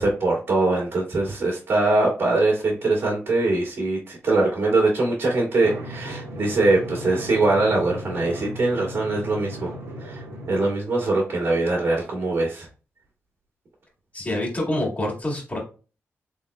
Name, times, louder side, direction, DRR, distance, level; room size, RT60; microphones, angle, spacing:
voice 1, 0.0-9.7 10.0-10.2 10.5-12.7, right 2 dB, 60° right, -3 dB, 1.8 m, -22 dB
Drum, 5.6-10.6, right 1 dB, 85° right, 1.4 m, -36 dB
voice 2, 14.1-15.6, left 1 dB, 30° left, -2 dB, 2.0 m, -26 dB
3.8 x 3.5 x 2.3 m, 0.34 s
cardioid pair, 60°, 5 cm